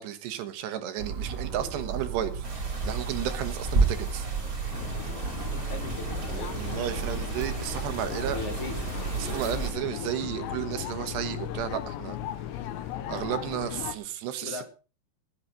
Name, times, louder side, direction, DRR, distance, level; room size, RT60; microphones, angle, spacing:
voice 1, 0.0-4.3 6.3-8.4 9.2-12.2 13.1-14.7, right 11 dB, 80° right, 9 dB, 3.5 m, -33 dB
sound 1, 1.0-9.6, right 6 dB, 45° right, 3.2 m, -35 dB
sound 2, 2.4-9.7, right 3 dB, 20° right, 3.1 m, -33 dB
sound 3, 4.7-14.0, left 11 dB, 85° left, 3.2 m, -37 dB
voice 2, 5.5-6.5 8.1-8.7 14.4-14.7, left 4 dB, 55° left, 7 dB, 2.6 m, -39 dB
15.5 x 10.5 x 5.1 m, 0.35 s
omnidirectional pair, 4.9 m